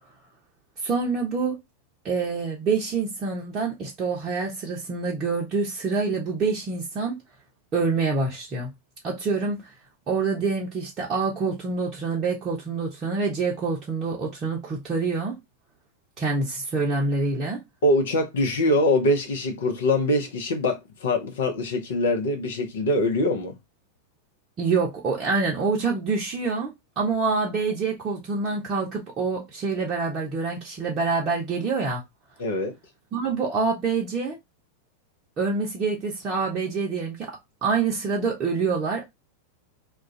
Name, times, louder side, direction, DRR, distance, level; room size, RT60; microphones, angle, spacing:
voice 1, 0.8-1.6 2.0-7.1 7.7-8.7 9.0-9.7 10.1-15.3 16.2-17.6 24.6-32.0 33.1-34.4 35.4-37.3 37.6-39.1, right 4 dB, 30° right, 0.7 m, -26 dB
voice 2, 17.8-23.5 32.4-32.7, left 1 dB, 60° left, 0.7 m, -23 dB
2.4 x 2.2 x 3.7 m
figure-of-eight pair, 90°, 0 cm